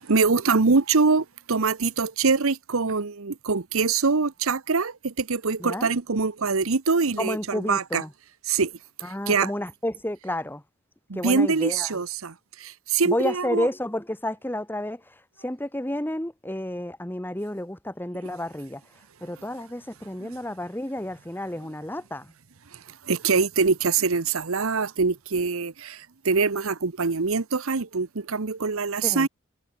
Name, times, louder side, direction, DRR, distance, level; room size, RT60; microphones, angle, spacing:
voice 1, 0.1-8.0 8.5-8.7 9.3-9.5 11.1-12.3 12.6-13.7 20.2-20.3 23.1-29.3, right 4 dB, 75° right, 1.0 m, -24 dB
voice 2, 7.2-8.1 9.0-10.6 11.1-12.0 13.0-18.8 19.2-22.3 29.0-29.3, left 1 dB, 10° left, 1.2 m, -31 dB
head